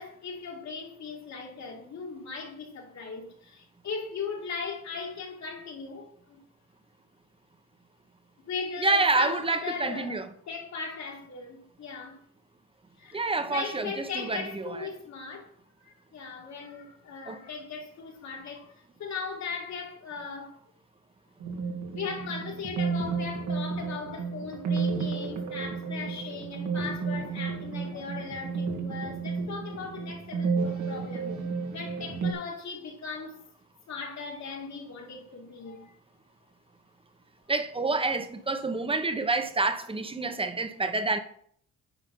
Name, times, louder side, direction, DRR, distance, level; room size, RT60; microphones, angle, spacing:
voice 1, 0.0-6.4 8.5-10.2 10.5-12.2 13.0-15.5 15.8-20.5 21.5-21.7 21.9-31.4 31.7-33.4 33.9-36.0, left 5 dB, 65° left, 2.6 m, -38 dB
voice 2, 8.8-10.3 13.1-14.9 17.3-17.4 37.5-41.2, right 3 dB, 20° right, 1.1 m, -28 dB
sound 1, 21.4-32.3, right 5 dB, 75° right, 2.2 m, -32 dB
9.9 x 5.3 x 5.5 m
cardioid pair, 90°, 30 cm